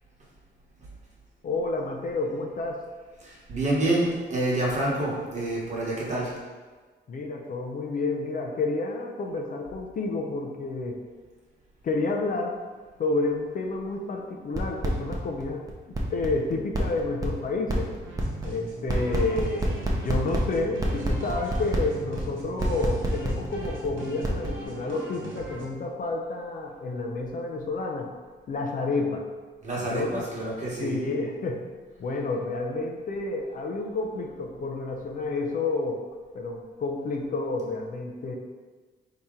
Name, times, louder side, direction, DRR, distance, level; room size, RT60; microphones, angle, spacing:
voice 1, 1.4-2.8 7.1-11.0 11.8-12.5 13.0-15.6 16.1-17.9 18.4-28.1 28.5-29.2 29.8-30.3 30.8-31.6 32.0-36.0 36.3-38.3, left 3 dB, 45° left, 1 dB, 0.4 m, -30 dB
voice 2, 3.2-6.4 29.6-31.0, right 1 dB, 35° right, -5 dB, 1.1 m, -27 dB
sound 1, 14.5-15.1 15.4-15.5 15.7-23.9 24.2-24.5, right 3 dB, 20° right, 0.6 m, -29 dB
sound 2, 18.0-25.7, right 2 dB, 80° right, 0.9 m, -41 dB
4.3 x 2.8 x 3.6 m, 1.4 s
wide cardioid pair, 145°, 20 cm